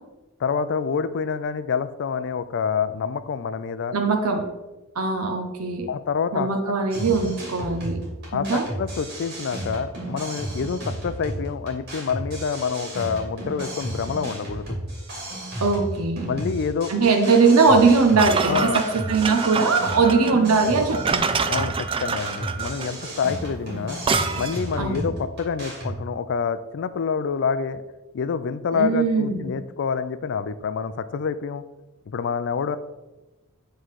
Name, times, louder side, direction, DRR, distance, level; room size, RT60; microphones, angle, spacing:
voice 1, 0.4-4.0 5.9-6.5 8.3-14.8 16.2-16.9 18.5-18.9 21.5-24.0 24.4-27.8 28.1-31.6 32.1-32.8, left 6 dB, 55° left, 13 dB, 0.4 m, -27 dB
voice 2, 3.9-4.5 4.9-5.9 6.3-8.0 8.3-8.6 15.6-16.3 16.9-21.4 24.8-25.1 28.7-29.6, right 4 dB, 80° right, 3 dB, 0.8 m, -20 dB
sound 1, 6.9-26.0, right 1 dB, 45° right, 2.4 m, -34 dB
sound 2, 18.2-24.7, right 5 dB, 25° right, 0.3 m, -27 dB
7.5 x 3.8 x 4.7 m, 1.1 s
head